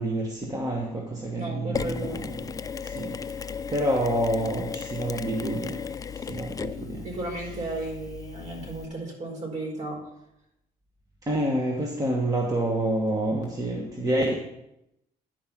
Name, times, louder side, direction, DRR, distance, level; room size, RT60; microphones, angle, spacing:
voice 1, 0.0-2.2 2.8-5.8 6.1-7.0 11.2-14.3, right 1 dB, 20° right, 1.2 m, -28 dB
voice 2, 1.3-2.2 7.0-10.0, right 2 dB, 45° right, 4.5 m, -34 dB
Mechanisms, 1.7-8.9, left 6 dB, 20° left, 0.4 m, -36 dB
10.5 x 5.4 x 6.0 m
cardioid pair, 110°, 17 cm